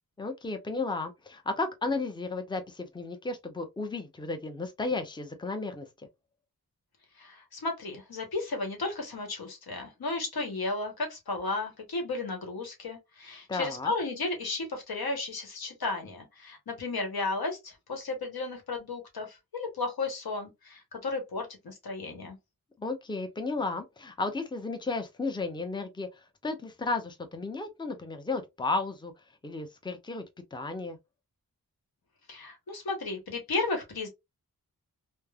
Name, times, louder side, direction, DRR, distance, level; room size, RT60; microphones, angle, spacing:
voice 1, 0.2-5.9 13.5-13.9 22.8-29.1 29.4-30.2 30.5-31.0, left 3 dB, 15° left, 0.6 m, -33 dB
voice 2, 7.2-22.4 32.3-34.1, left 3 dB, 85° left, 1.0 m, -34 dB
3.1 x 2.0 x 2.2 m
wide cardioid pair, 65°, 36 cm